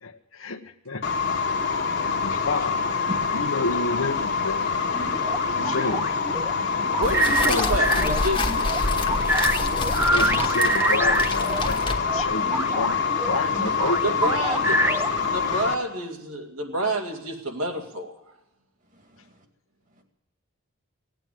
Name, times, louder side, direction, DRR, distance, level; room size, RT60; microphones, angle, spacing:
voice 1, 0.0-1.3 2.0-4.7 5.4-6.1 7.1-8.2 9.9-14.2, left 3 dB, 70° left, 5 dB, 1.1 m, -31 dB
sound 1, 1.0-15.7, left 5 dB, 55° left, 1.5 m, -26 dB
sound 2, 4.9-11.7 12.1-15.3, right 1 dB, 10° right, 0.7 m, -26 dB
voice 2, 6.9-8.6 14.0-18.1, right 1 dB, 75° right, 1 dB, 2.6 m, -29 dB
sound 3, 7.0-12.3, left 2 dB, 25° left, 1.3 m, -29 dB
voice 3, 19.1-19.4, equal, 35° right, 5 dB, 2.1 m, -39 dB
16.5 x 9.1 x 9.3 m, 0.89 s
head